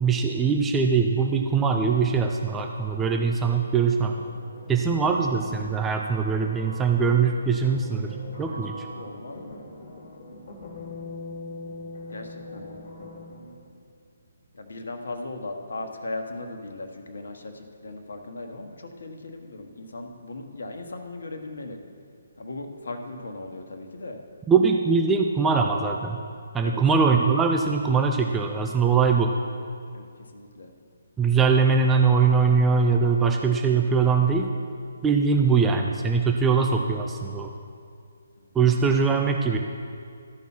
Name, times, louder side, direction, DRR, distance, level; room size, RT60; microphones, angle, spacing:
voice 1, 0.0-4.1 4.7-8.8 24.5-26.2 26.5-29.3 31.2-34.5 35.0-37.5 38.5-39.6, right 5 dB, 10° right, 2 dB, 0.5 m, -22 dB
sound 1, 4.1-13.7, left 2 dB, 45° left, 1.7 m, -42 dB
voice 2, 8.4-9.6 12.1-12.7 14.5-21.8 22.4-24.2 26.6-26.8 29.9-30.7 38.4-38.5, left 2 dB, 65° left, 5 dB, 1.2 m, -38 dB
13.0 x 5.4 x 6.0 m, 2.3 s
figure-of-eight pair, 140°, 0 cm